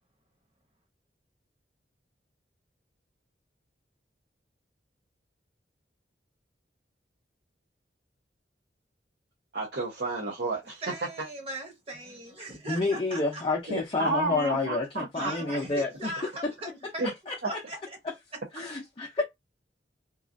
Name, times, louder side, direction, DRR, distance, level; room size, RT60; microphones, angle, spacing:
voice 1, 9.5-10.8 11.2-11.3 13.7-15.3 17.0-17.1 17.4-17.5, right 2 dB, 65° right, 0.8 m, -31 dB
voice 2, 10.8-13.4 15.1-17.1 17.4-17.8, right 1 dB, 35° right, 1.1 m, -39 dB
voice 3, 12.7-16.1 17.0-17.6 18.0-18.1 18.5-19.2, left 3 dB, 30° left, 0.5 m, -29 dB
3.1 x 2.4 x 2.5 m
head